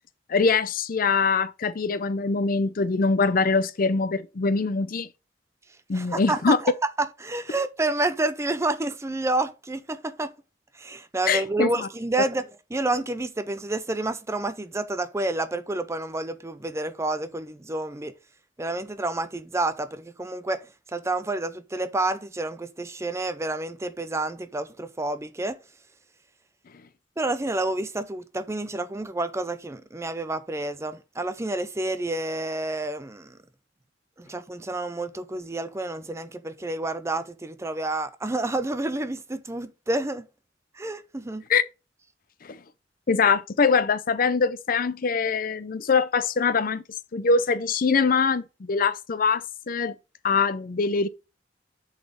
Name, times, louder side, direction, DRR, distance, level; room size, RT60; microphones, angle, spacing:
voice 1, 0.3-5.1 5.9-6.6 11.3-11.9 41.5-41.6 42.4-42.6 43.1-46.8 47.1-49.9 50.2-51.1, left 4 dB, 50° left, 0.5 m, -23 dB
voice 2, 5.9-6.7 7.0-10.3 10.7-18.1 18.6-25.6 27.2-33.4 34.2-40.3 40.7-41.4, right 2 dB, 15° right, 0.5 m, -29 dB
7.1 x 4.1 x 5.0 m
head